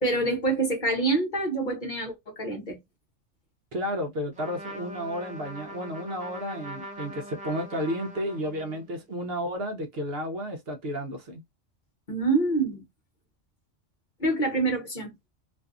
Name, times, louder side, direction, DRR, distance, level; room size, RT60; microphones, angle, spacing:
voice 1, 0.0-2.8 12.1-12.8 14.2-15.1, right 3 dB, 45° left, 0.8 m, -26 dB
voice 2, 3.7-11.4, equal, 60° right, 0.7 m, -32 dB
Trumpet, 4.3-8.9, equal, 10° right, 0.4 m, -42 dB
2.5 x 2.5 x 2.3 m
omnidirectional pair, 1.3 m